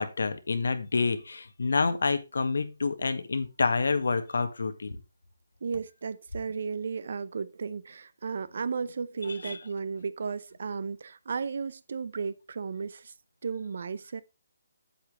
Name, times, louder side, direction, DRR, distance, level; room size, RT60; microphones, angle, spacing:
voice 1, 0.0-5.0 9.2-9.6, left 4 dB, 75° left, 1.5 m, -28 dB
voice 2, 5.6-13.1 13.4-14.2, right 5 dB, 50° right, 0.5 m, -34 dB
8.6 x 8.2 x 3.3 m
hypercardioid pair, 170°, 0 cm